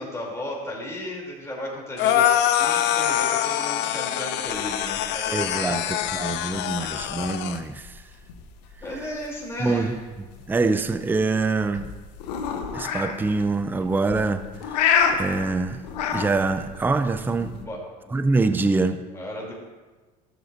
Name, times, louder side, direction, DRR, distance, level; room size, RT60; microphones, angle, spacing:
voice 1, 0.0-5.9 8.8-10.0 17.2-18.1 19.1-19.6, left 1 dB, 15° left, 3.0 m, -35 dB
sound 1, 2.0-7.6, left 11 dB, 55° left, 0.6 m, -24 dB
sound 2, 4.5-17.6, left 7 dB, 75° left, 1.0 m, -30 dB
voice 2, 5.3-8.0 9.6-11.9 12.7-14.8 15.1-15.8 16.1-17.5 18.1-19.0, right 3 dB, 10° right, 0.4 m, -25 dB
13.0 x 7.9 x 2.6 m
hypercardioid pair, 75°, 21 cm